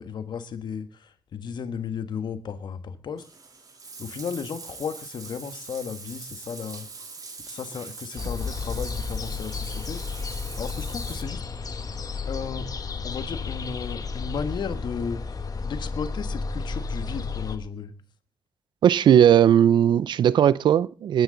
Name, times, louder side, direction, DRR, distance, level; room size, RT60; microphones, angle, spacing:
voice 1, 0.0-3.3 4.0-6.9 7.4-10.3 10.6-11.4 12.3-12.7 13.0-18.0, left 6 dB, 70° left, 1.4 m, -34 dB
Bathtub (filling or washing), 3.2-11.2, right 4 dB, 50° right, 3.1 m, -42 dB
sound 1, 8.2-17.6, left 4 dB, 50° left, 1.4 m, -32 dB
voice 2, 18.8-21.2, right 9 dB, 80° right, 0.6 m, -18 dB
21.0 x 10.0 x 3.9 m
cardioid pair, 55°, 8 cm